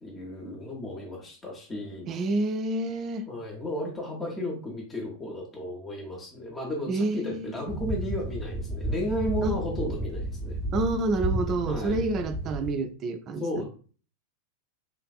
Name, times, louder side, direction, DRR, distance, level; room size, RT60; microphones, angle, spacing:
voice 1, 0.0-2.1 3.3-10.6 11.6-12.0 13.4-13.6, left 1 dB, 20° left, 0.7 m, -34 dB
voice 2, 2.1-3.3 6.9-7.6 9.4-9.6 10.7-13.6, right 2 dB, 30° right, 0.3 m, -28 dB
sound 1, 7.7-12.7, right 1 dB, 15° right, 0.8 m, -32 dB
3.1 x 2.4 x 2.3 m
figure-of-eight pair, 90°, 0 cm